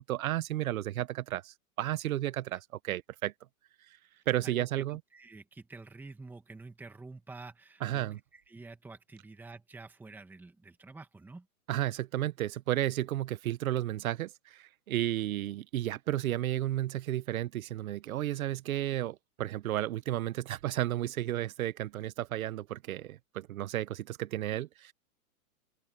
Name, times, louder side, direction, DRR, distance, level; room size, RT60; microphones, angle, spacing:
voice 1, 0.0-3.3 4.3-5.0 7.8-8.2 11.7-24.9, right 13 dB, 65° right, 1.1 m, -33 dB
voice 2, 4.1-8.1 8.3-11.5, right 3 dB, 5° right, 1.7 m, -49 dB
open air
hypercardioid pair, 155°, 45 cm